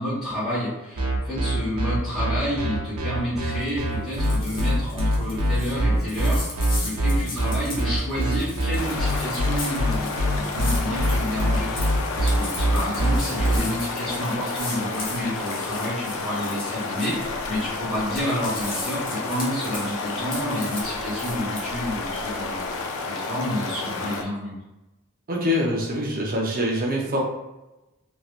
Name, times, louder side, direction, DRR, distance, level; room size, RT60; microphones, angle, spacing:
voice 1, 0.0-22.8 23.0-24.5, equal, 5° right, -14 dB, 1.1 m, -30 dB
sound 1, 1.0-13.6, right 1 dB, 75° right, 0.8 m, -23 dB
sound 2, 3.5-3.8 4.1-17.8 18.0-21.6, left 2 dB, 40° left, 0.9 m, -38 dB
sound 3, 8.8-24.2, left 3 dB, 60° left, 0.4 m, -31 dB
voice 2, 25.3-27.2, left 1 dB, 40° right, -2 dB, 0.6 m, -24 dB
3.1 x 2.8 x 2.4 m, 1.0 s
head